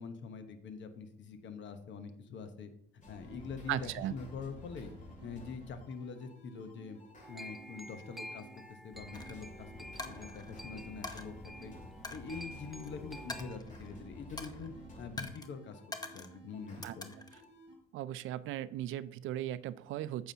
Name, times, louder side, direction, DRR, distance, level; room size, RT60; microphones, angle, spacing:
voice 1, 0.0-2.7 3.1-4.9 5.2-7.0 7.3-9.7 10.1-11.7 12.1-14.7 15.0-15.8 16.1-17.2, left 5 dB, 70° left, 8 dB, 1.0 m, -44 dB
sound 1, 3.0-17.7, equal, 40° left, 2.6 m, -52 dB
voice 2, 3.7-4.1 16.8-16.9 17.9-20.3, right 13 dB, 85° right, 16 dB, 0.4 m, -37 dB
sound 2, 7.2-13.6, equal, ahead, 0.4 m, -50 dB
Coin (dropping), 9.1-9.3 10.0-10.5 11.0-11.2 12.0-12.9 13.3-14.0 14.4-14.7 15.2-15.5 15.9-16.4 16.8-17.4, left 3 dB, 20° left, 0.8 m, -44 dB
9.1 x 7.0 x 2.8 m, 0.72 s
cardioid pair, 90°, 20 cm